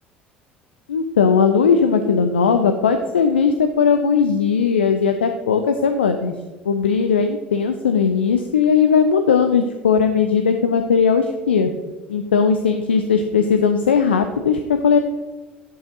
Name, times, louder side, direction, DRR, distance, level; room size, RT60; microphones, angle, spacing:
voice 1, 0.9-6.3 6.6-11.7 12.1-15.0, left 6 dB, 80° left, 7 dB, 0.4 m, -18 dB
11.0 x 5.4 x 2.7 m, 1.2 s
figure-of-eight pair, 65°, 6 cm